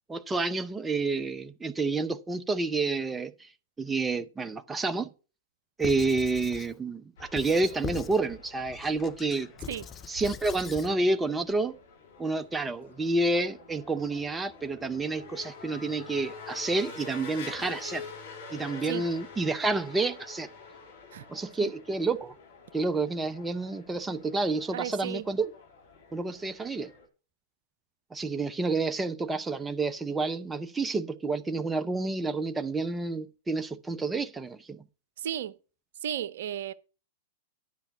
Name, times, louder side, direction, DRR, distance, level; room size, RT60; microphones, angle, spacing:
voice 1, 0.1-3.5 3.8-5.1 5.8-9.5 10.1-11.8 12.2-18.0 18.5-20.5 21.3-22.3 22.7-25.5 26.1-26.9 28.1-34.8, right 3 dB, 10° right, 0.7 m, -29 dB
Squeak / Writing, 5.8-6.7 7.4-8.2 8.7-10.9, left 8 dB, 25° left, 0.6 m, -41 dB
sound 1, 7.2-27.1, left 4 dB, 60° left, 3.1 m, -47 dB
voice 2, 24.7-25.3 35.2-35.5 36.0-36.7, right 10 dB, 65° right, 0.6 m, -34 dB
10.5 x 5.7 x 5.6 m
hypercardioid pair, 105°, 0 cm